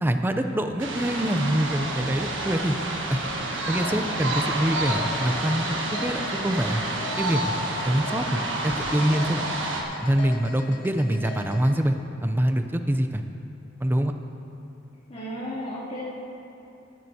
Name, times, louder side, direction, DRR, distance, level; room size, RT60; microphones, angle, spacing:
voice 1, 0.0-2.8 3.1-3.2 3.7-6.8 7.2-7.5 7.9-9.4 10.0-12.0 12.2-13.2 13.8-14.1, right 1 dB, 10° right, 7 dB, 0.5 m, -25 dB
sound 1, 0.8-9.8, right 2 dB, 85° right, 1.3 m, -29 dB
sound 2, 3.3-11.7, left 4 dB, 65° left, 1.6 m, -41 dB
voice 2, 15.1-16.1, equal, 40° left, -10 dB, 2.7 m, -33 dB
15.5 x 12.0 x 2.8 m, 2.8 s
head